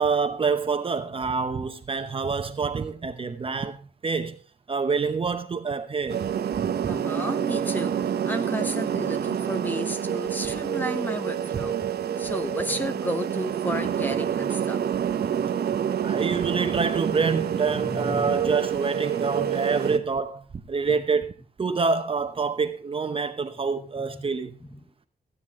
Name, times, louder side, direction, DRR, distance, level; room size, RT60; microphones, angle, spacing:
voice 1, 0.0-4.4 4.7-6.3 16.0-24.6, right 5 dB, 35° right, 0.8 m, -27 dB
sound 1, 6.1-20.0, right 9 dB, 75° right, 0.9 m, -28 dB
voice 2, 6.9-14.8 15.3-15.4 17.6-18.4 19.9-20.0 24.7-24.8, left 1 dB, 10° left, 1.0 m, -33 dB
14.5 x 9.6 x 3.6 m
wide cardioid pair, 170°, 17 cm